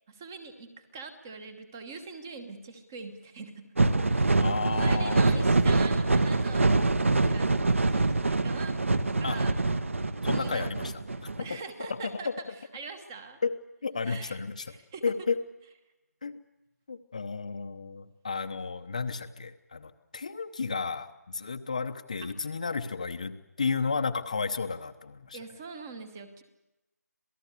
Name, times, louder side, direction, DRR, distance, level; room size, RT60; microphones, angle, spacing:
voice 1, 0.1-3.7 4.1-8.8 9.0-9.6 9.9-10.7 11.1-12.3 12.7-13.4 14.0-14.4 14.7-15.0 22.2-22.3 25.3-26.4, right 4 dB, 10° right, 10 dB, 1.1 m, -43 dB
sound 1, 3.8-11.4, right 3 dB, 50° right, 1.6 m, -25 dB
voice 2, 4.4-5.5 9.2-9.4 10.2-10.9 11.4-11.6 11.9-12.3 13.4-13.5 13.8-14.7 15.0-15.4 16.2-16.3 16.9-25.4, left 4 dB, 25° left, 7 dB, 0.9 m, -32 dB
27.0 x 18.5 x 8.2 m, 0.98 s
figure-of-eight pair, 175°, 9 cm